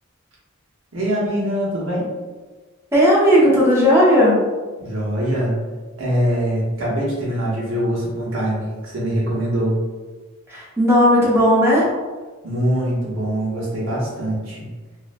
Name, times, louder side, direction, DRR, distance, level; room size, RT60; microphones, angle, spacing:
voice 1, 0.9-2.1 4.8-5.6 6.0-9.8 12.4-14.7, equal, 65° right, -6 dB, 0.9 m, -23 dB
voice 2, 2.9-4.4 10.5-11.9, equal, 10° right, -6 dB, 0.6 m, -15 dB
2.6 x 2.0 x 2.4 m, 1.3 s
head